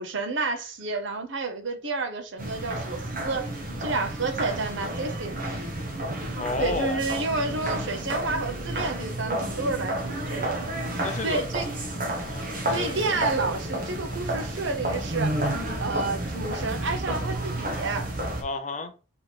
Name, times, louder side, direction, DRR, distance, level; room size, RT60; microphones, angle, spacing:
voice 1, 0.0-3.5 3.8-5.5 6.6-10.7 11.2-11.6 12.7-15.4 15.8-18.1, right 3 dB, 65° right, 0.8 m, -30 dB
sound 1, 2.4-18.4, right 1 dB, 45° right, 1.0 m, -31 dB
voice 2, 6.4-7.0 11.0-11.5 12.1-13.2 18.4-18.9, left 3 dB, 35° left, 0.5 m, -32 dB
3.8 x 3.1 x 4.1 m
head